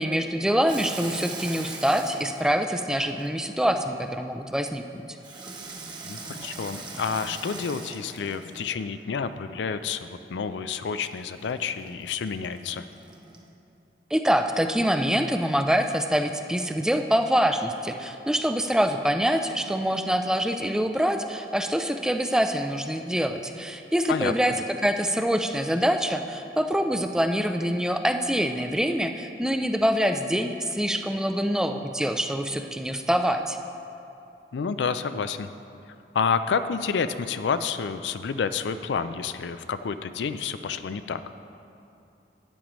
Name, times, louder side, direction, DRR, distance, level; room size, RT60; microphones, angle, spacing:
voice 1, 0.0-4.8 14.1-24.5 24.8-33.6, equal, 5° right, 6 dB, 0.3 m, -25 dB
Water tap faucet / Sink (filling or washing), 0.7-3.7 5.2-8.9 11.0-13.5, right 3 dB, 25° right, 0.8 m, -41 dB
voice 2, 6.0-12.8 24.1-24.5 34.5-35.5 36.1-41.2, left 6 dB, 85° left, 11 dB, 0.4 m, -29 dB
12.5 x 10.0 x 3.1 m, 2.8 s
head